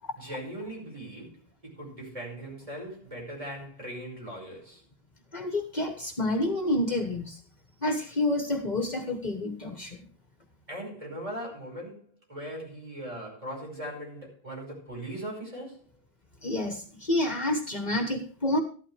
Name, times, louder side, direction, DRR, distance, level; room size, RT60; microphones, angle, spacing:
voice 1, 0.2-4.8 10.7-15.8, right 1 dB, 35° right, 5.7 m, -39 dB
voice 2, 5.3-7.3 7.8-10.0 16.4-18.6, left 1 dB, 45° left, 1.4 m, -28 dB
14.0 x 12.0 x 3.3 m
omnidirectional pair, 1.0 m